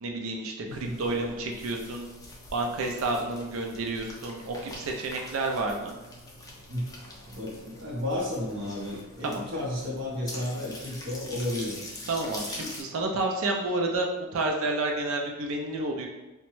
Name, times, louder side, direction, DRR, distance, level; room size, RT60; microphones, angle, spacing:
voice 1, 0.0-2.1 2.5-5.9 9.2-9.4 12.1-14.1 14.3-16.1, right 2 dB, 70° right, 2 dB, 0.4 m, -30 dB
voice 2, 0.6-1.0 6.7-6.9 7.3-11.8, left 1 dB, 55° right, -6 dB, 0.8 m, -33 dB
sound 1, 0.7-12.8, left 1 dB, 15° left, 0.4 m, -44 dB
2.9 x 2.2 x 3.0 m, 1.1 s
head